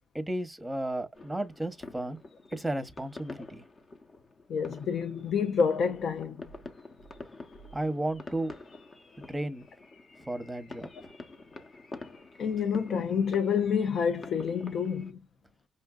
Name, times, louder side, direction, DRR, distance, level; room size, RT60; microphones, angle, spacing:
voice 1, 0.1-2.2 2.5-3.6 7.7-8.5 9.3-9.6 10.2-11.1, right 1 dB, 5° right, 0.9 m, -33 dB
sound 1, 1.1-15.1, left 3 dB, 40° left, 0.9 m, -48 dB
voice 2, 4.5-6.4 12.4-15.2, left 6 dB, 60° left, 0.5 m, -28 dB
5.3 x 2.5 x 2.3 m
cardioid pair, 90°, 0 cm